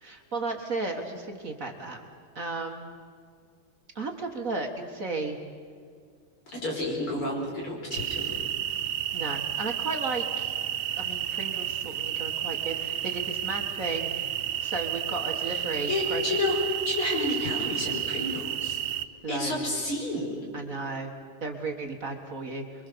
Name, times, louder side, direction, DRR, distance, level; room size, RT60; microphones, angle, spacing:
voice 1, 0.0-2.0 2.4-2.8 4.0-5.4 9.1-10.5 11.0-16.3 19.2-19.7 20.5-21.1 21.4-22.8, right 3 dB, 40° right, 3 dB, 1.9 m, -34 dB
voice 2, 6.5-8.4 15.4-15.6 15.9-18.8 19.3-20.4, left 2 dB, 75° left, -1 dB, 6.0 m, -30 dB
sound 1, 7.9-19.1, right 11 dB, 90° right, 1.8 m, -31 dB
26.5 x 23.0 x 6.9 m, 2.1 s
omnidirectional pair, 2.4 m